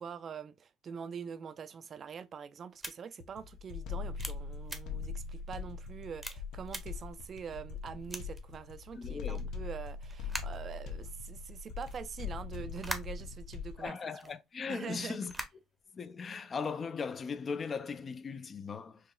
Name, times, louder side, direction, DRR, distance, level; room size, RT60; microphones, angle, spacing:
voice 1, 0.0-14.0 14.2-14.3 14.7-15.3, right 7 dB, 40° right, 0.4 m, -44 dB
sound 1, 2.8-2.9 3.5-3.6 4.2-4.3 4.6-4.8 5.4-5.5 6.2-6.3 6.7-6.8 7.4-7.5 8.1-8.4 9.3-9.4 10.1-10.6 11.4-13.7 14.1-14.3 15.1-15.8, right 1 dB, 5° right, 0.7 m, -42 dB
sound 2, 3.2-13.9, left 5 dB, 70° left, 0.8 m, -41 dB
voice 2, 9.0-9.5 13.8-15.3 15.9-19.0, left 5 dB, 35° left, 0.4 m, -38 dB
4.7 x 2.9 x 2.3 m
cardioid pair, 130°, 0 cm